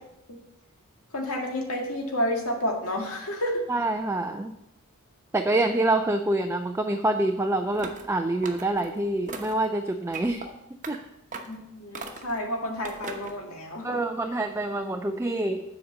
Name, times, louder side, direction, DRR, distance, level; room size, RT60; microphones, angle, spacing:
voice 1, 1.1-3.6 11.5-14.0, left 1 dB, 75° left, 2 dB, 1.9 m, -30 dB
voice 2, 3.7-4.5 5.3-10.5 10.9-11.0 13.8-15.6, right 2 dB, 10° right, 5 dB, 0.4 m, -26 dB
sound 1, 7.7-8.1 8.4-8.9 9.3-9.7 10.1-10.5 10.8-11.0 11.3-11.6 11.9-12.4 12.8-13.4, right 3 dB, 35° right, 1.0 m, -38 dB
7.7 x 5.1 x 7.4 m, 0.84 s
head